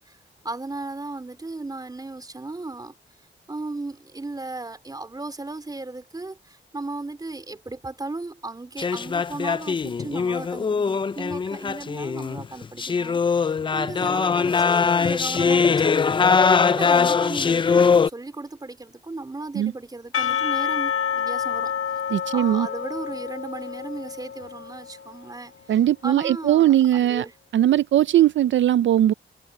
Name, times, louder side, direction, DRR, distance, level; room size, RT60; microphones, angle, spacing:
voice 1, 0.4-2.9 3.5-16.3 16.7-21.7 22.3-27.3, right 2 dB, 20° right, 4.1 m, -36 dB
sound 1, 8.8-18.1, left 5 dB, 25° left, 0.3 m, -21 dB
Percussion / Church bell, 20.1-25.2, left 8 dB, 90° left, 1.6 m, -28 dB
voice 2, 22.1-22.7 25.7-27.3 27.5-29.1, right 12 dB, 70° right, 0.4 m, -19 dB
wide cardioid pair, 135°, 20 cm